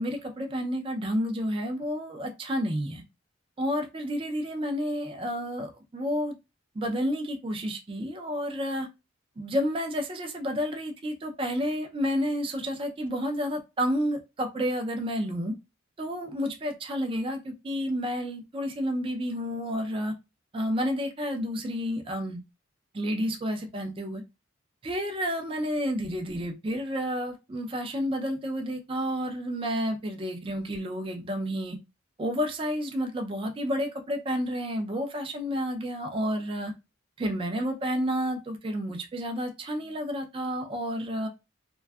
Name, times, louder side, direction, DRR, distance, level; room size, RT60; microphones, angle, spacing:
voice 1, 0.0-3.0 3.6-6.3 6.8-8.9 9.4-15.5 16.0-20.1 20.5-22.4 22.9-24.2 24.8-31.8 32.2-36.7 37.2-41.3, equal, 25° right, 0.4 m, -30 dB
2.5 x 2.2 x 2.2 m
head